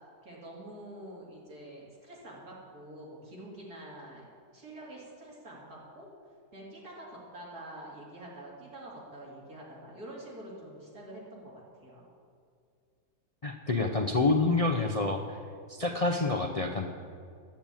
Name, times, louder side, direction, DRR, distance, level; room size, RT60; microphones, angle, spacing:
voice 1, 0.2-4.2 4.5-6.1 6.5-12.0, right 1 dB, 70° right, -4 dB, 3.7 m, -46 dB
voice 2, 13.4-15.4 15.7-16.9, left 3 dB, 50° left, 3 dB, 0.4 m, -28 dB
10.5 x 8.5 x 9.0 m, 2.2 s
omnidirectional pair, 1.7 m